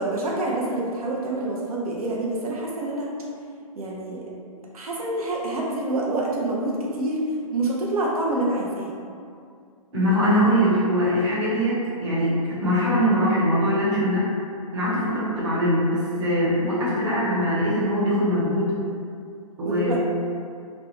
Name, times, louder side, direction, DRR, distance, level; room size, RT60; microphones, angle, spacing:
voice 1, 0.0-3.1 3.7-4.2 4.7-7.2 7.5-8.9 16.7-16.9 19.6-20.0, right 2 dB, 80° right, -4 dB, 0.5 m, -27 dB
voice 2, 9.9-14.3 14.7-18.7 19.6-20.0, equal, 50° right, -8 dB, 1.2 m, -22 dB
2.5 x 2.1 x 2.9 m, 2.3 s
hypercardioid pair, 135°, 19 cm